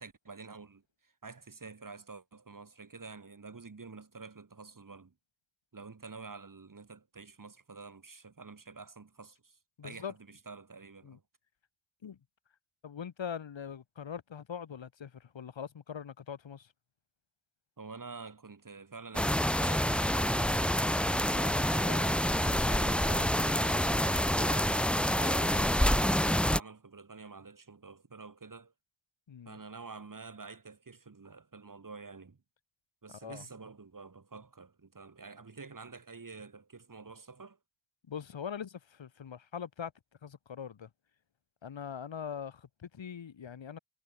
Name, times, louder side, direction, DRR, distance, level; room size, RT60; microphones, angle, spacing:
voice 1, 0.0-5.1 5.7-11.2 17.8-20.8 21.1-24.7 25.2-28.7 29.5-32.4 33.0-37.6, right 4 dB, 40° right, 7.3 m, -48 dB
voice 2, 9.8-10.1 11.0-11.2 12.0-12.2 12.8-16.7 29.3-29.6 33.2-33.5 38.1-39.9 40.2-40.9 41.6-43.8, left 7 dB, 60° left, 6.6 m, -42 dB
sound 1, 19.1-26.6, equal, ahead, 1.1 m, -27 dB
hypercardioid pair, 40°, 50 cm